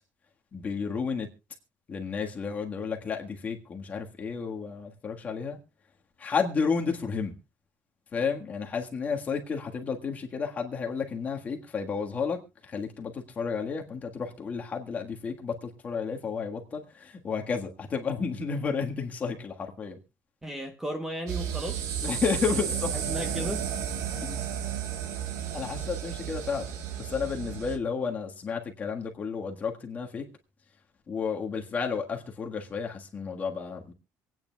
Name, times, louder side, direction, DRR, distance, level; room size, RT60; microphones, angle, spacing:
voice 1, 0.5-1.3 1.9-5.6 6.2-7.3 8.1-20.0 22.0-22.9 24.2-24.4 25.5-26.7 27.0-30.3 31.1-33.9, left 5 dB, 25° left, 1.5 m, -32 dB
voice 2, 20.4-21.8 22.5-22.6 23.1-23.6, equal, 10° right, 0.9 m, -34 dB
sound 1, 21.3-27.8, right 8 dB, 70° right, 1.3 m, -33 dB
26.5 x 9.2 x 2.3 m
cardioid pair, 165°, 6 cm